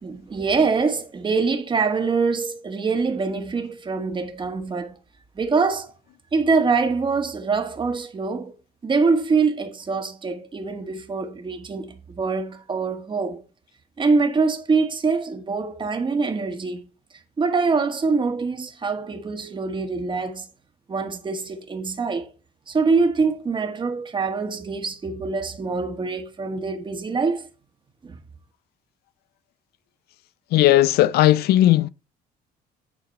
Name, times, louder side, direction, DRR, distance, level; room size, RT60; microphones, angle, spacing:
voice 1, 0.0-5.0 5.3-5.9 6.3-8.5 8.8-13.4 14.0-16.9 17.4-20.5 20.9-22.3 22.7-27.5 28.0-28.2, right 4 dB, 30° right, 1.4 m, -24 dB
voice 2, 30.5-31.9, left 14 dB, 70° left, 0.4 m, -16 dB
9.7 x 4.0 x 4.4 m
cardioid pair, 110°, 17 cm